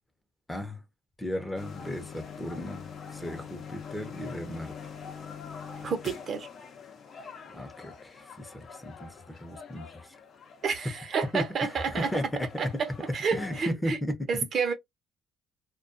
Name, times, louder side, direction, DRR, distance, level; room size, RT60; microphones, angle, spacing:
voice 1, 0.5-0.8 1.2-4.9 7.1-7.2 7.5-10.2 10.6-10.7 11.3-12.6 13.3-14.3, equal, 10° left, 0.7 m, -35 dB
sound 1, 1.6-13.7, left 6 dB, 55° left, 0.7 m, -45 dB
voice 2, 5.8-6.5 10.6-12.1 12.6-14.0 14.3-14.7, right 5 dB, 50° right, 0.6 m, -30 dB
2.2 x 2.2 x 2.5 m
cardioid pair, 95°, 0 cm